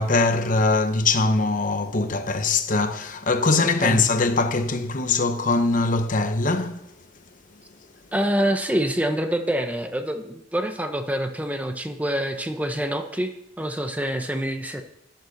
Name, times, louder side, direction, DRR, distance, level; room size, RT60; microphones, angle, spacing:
voice 1, 0.0-6.8, left 3 dB, 40° left, 0.9 m, -22 dB
voice 2, 3.6-4.0 8.1-13.3 13.6-14.8, right 1 dB, 10° right, 0.8 m, -26 dB
11.0 x 8.9 x 6.5 m
head